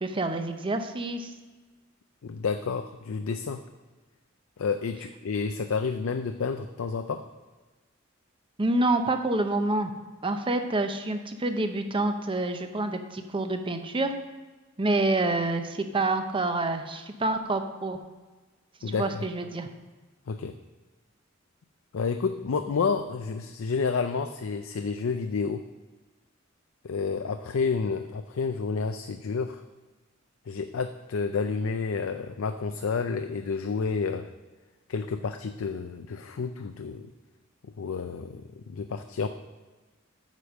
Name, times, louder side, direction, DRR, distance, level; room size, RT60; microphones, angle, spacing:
voice 1, 0.0-1.3 8.6-9.9 10.2-14.1 14.8-18.0 18.9-19.7, right 2 dB, 25° right, 7 dB, 0.7 m, -27 dB
voice 2, 2.2-3.6 4.6-7.2 18.8-19.2 20.3-20.6 21.9-25.7 26.8-29.6 30.5-34.3 34.9-37.1 37.8-39.3, left 5 dB, 85° left, 7 dB, 0.5 m, -30 dB
9.2 x 5.1 x 6.3 m, 1.3 s
head